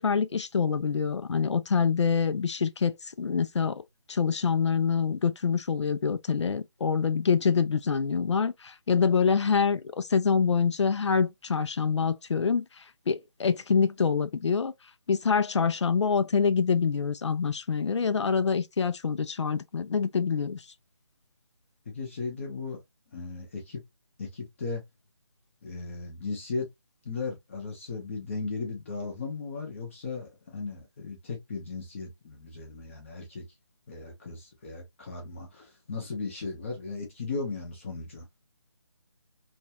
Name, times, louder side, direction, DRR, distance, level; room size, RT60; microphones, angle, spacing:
voice 1, 0.0-3.8 4.1-12.6 13.1-14.7 15.1-20.6, left 6 dB, 75° left, 0.4 m, -26 dB
voice 2, 21.9-22.8 23.1-23.8 24.2-24.8 25.6-26.7 27.0-33.5 33.9-38.3, left 4 dB, 25° left, 0.7 m, -36 dB
2.6 x 2.3 x 2.7 m
figure-of-eight pair, 165°, 15 cm